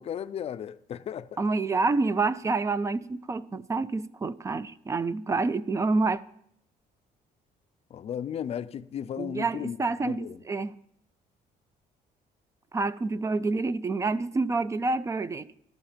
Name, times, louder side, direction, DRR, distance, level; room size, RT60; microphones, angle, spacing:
voice 1, 0.0-1.4 7.9-9.8 10.0-10.4, left 9 dB, 40° left, 0.5 m, -35 dB
voice 2, 1.4-6.2 9.2-10.7 12.7-15.5, right 3 dB, 20° right, 0.4 m, -28 dB
13.5 x 11.5 x 5.1 m
cardioid pair, 155°, 16 cm